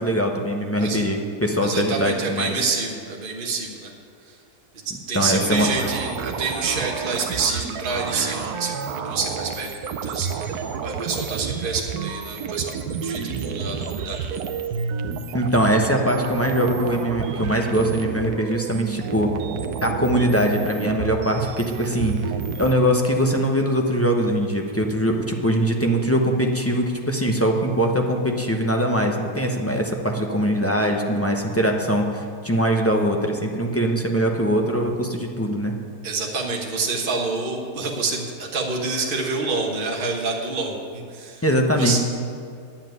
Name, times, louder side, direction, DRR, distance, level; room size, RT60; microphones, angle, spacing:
voice 1, 0.0-2.5 5.1-5.7 15.3-19.3 19.8-22.2 22.6-35.7 41.4-42.0, equal, 15° left, 1 dB, 0.6 m, -22 dB
voice 2, 1.6-3.9 4.2-4.4 4.8-14.4 36.0-41.4 41.8-42.0, right 4 dB, 35° right, 0 dB, 1.4 m, -27 dB
sound 1, 5.6-22.7, right 6 dB, 75° right, 1.2 m, -30 dB
10.0 x 7.4 x 9.3 m, 2.3 s
omnidirectional pair, 1.7 m